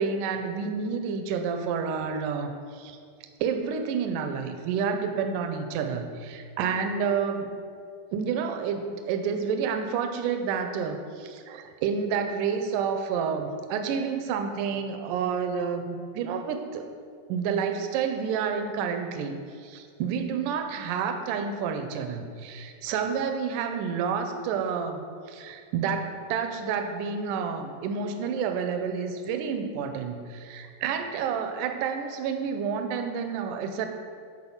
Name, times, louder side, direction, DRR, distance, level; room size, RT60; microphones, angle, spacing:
voice 1, 0.0-3.0 3.4-7.5 8.1-16.9 17.3-25.0 25.3-33.9, right 6 dB, 80° right, 6 dB, 1.9 m, -29 dB
11.0 x 4.4 x 7.2 m, 2.2 s
omnidirectional pair, 4.4 m